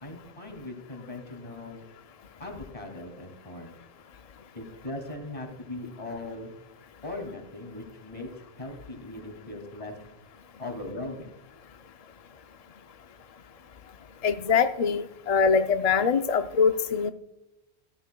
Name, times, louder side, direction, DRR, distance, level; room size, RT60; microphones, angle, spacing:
voice 1, 0.0-1.8 2.4-3.7 4.5-6.5 7.0-8.3 8.6-9.9 10.6-11.3, left 2 dB, 30° left, 3 dB, 2.5 m, -39 dB
voice 2, 14.2-17.1, left 5 dB, 50° left, 8 dB, 0.5 m, -23 dB
15.5 x 13.5 x 2.2 m, 0.89 s
omnidirectional pair, 1.1 m